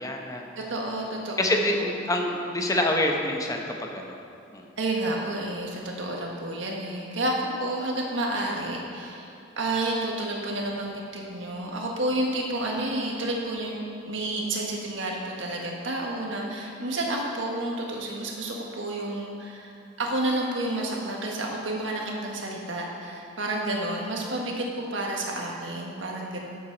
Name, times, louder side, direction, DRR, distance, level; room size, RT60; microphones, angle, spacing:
voice 1, 0.0-0.5 1.4-4.2 4.5-4.7, left 1 dB, 20° left, 2 dB, 0.9 m, -26 dB
voice 2, 0.6-1.9 4.8-13.8 14.1-19.7 20.0-26.4, right 1 dB, 75° right, -1 dB, 1.6 m, -30 dB
12.0 x 7.6 x 4.0 m, 2.6 s
head